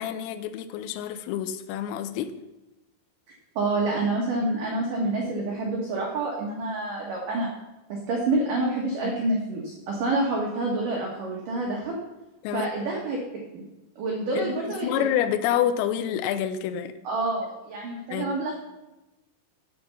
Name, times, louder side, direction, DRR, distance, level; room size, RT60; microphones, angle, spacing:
voice 1, 0.0-2.3 9.0-9.1 12.4-12.7 14.4-14.5 14.8-16.9 18.1-18.3, left 10 dB, 85° left, 10 dB, 3.2 m, -28 dB
voice 2, 3.6-7.5 7.9-12.0 12.5-13.2 13.5-13.6 14.0-14.9 17.0-18.6, right 2 dB, 70° right, -2 dB, 2.0 m, -27 dB
10.0 x 5.7 x 6.8 m, 1.0 s
omnidirectional pair, 5.9 m